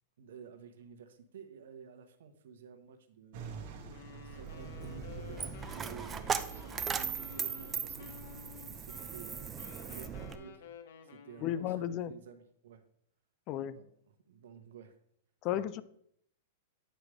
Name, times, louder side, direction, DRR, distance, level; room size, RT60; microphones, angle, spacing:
voice 1, 0.2-3.6 4.2-8.5 8.8-9.5 9.8-10.6 11.0-12.8 13.7-14.9 15.5-15.7, right 7 dB, 75° right, 8 dB, 0.9 m, -52 dB
sound 1, 3.3-10.3, right 4 dB, 55° right, 1.2 m, -48 dB
Wind instrument woodwind instrument, 3.8-11.8, left 6 dB, 70° left, 0.9 m, -53 dB
Coin (dropping), 4.2-10.4, right 6 dB, 20° right, 0.4 m, -39 dB
voice 2, 11.4-12.1 13.5-13.8 15.4-15.8, left 11 dB, 40° left, 16 dB, 0.4 m, -33 dB
9.0 x 3.2 x 4.8 m, 0.69 s
hypercardioid pair, 130°, 0 cm